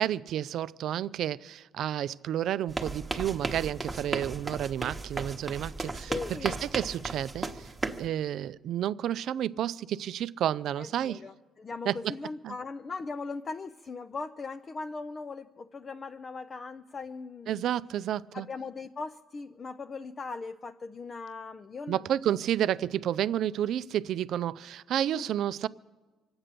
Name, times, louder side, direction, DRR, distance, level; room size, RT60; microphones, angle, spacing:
voice 1, 0.0-6.1 6.4-7.7 8.0-11.2 11.9-12.1 12.4-12.5 17.5-18.5 21.9-25.7, right 11 dB, 65° right, 0.4 m, -30 dB
sound 1, 2.7-8.1, right 2 dB, 15° right, 1.1 m, -35 dB
voice 2, 6.1-6.6 10.8-17.6 18.3-22.0 25.1-25.3, left 4 dB, 30° left, 0.5 m, -39 dB
24.0 x 8.8 x 6.8 m
cardioid pair, 115°, 0 cm